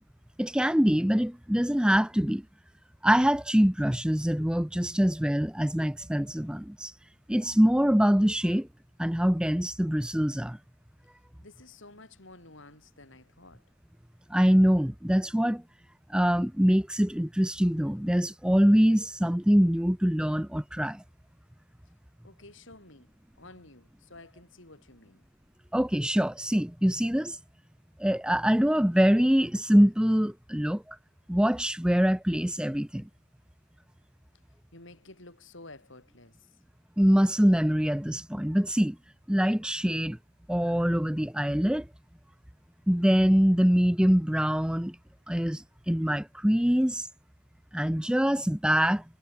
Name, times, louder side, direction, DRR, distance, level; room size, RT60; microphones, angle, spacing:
voice 1, 0.4-2.4 3.0-6.9 7.3-8.7 9.0-10.6 14.3-15.6 16.1-21.0 25.7-27.4 28.0-31.0 31.3-33.1 37.0-39.0 39.3-40.2 40.5-41.9 42.9-45.0 45.3-47.1 47.7-49.0, equal, 5° right, 0.7 m, -24 dB
voice 2, 11.4-13.6 22.2-25.2 34.7-36.5, left 2 dB, 65° left, 5.1 m, -51 dB
head